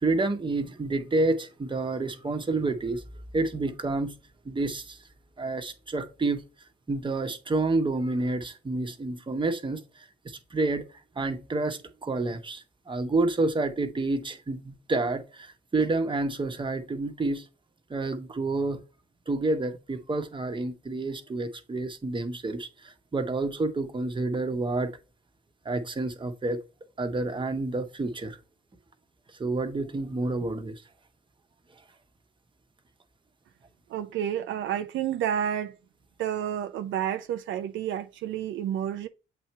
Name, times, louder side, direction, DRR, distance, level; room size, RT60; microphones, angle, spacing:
voice 1, 0.0-3.0 3.3-4.1 4.4-5.0 5.4-6.4 6.9-10.9 11.2-17.4 17.9-18.8 19.3-25.0 25.6-26.6 27.0-28.4 29.4-30.7, right 2 dB, 25° right, 1.2 m, -29 dB
voice 2, 33.9-35.7 36.2-39.1, right 10 dB, 75° right, 0.5 m, -30 dB
7.8 x 2.9 x 4.5 m
cardioid pair, 90°, 20 cm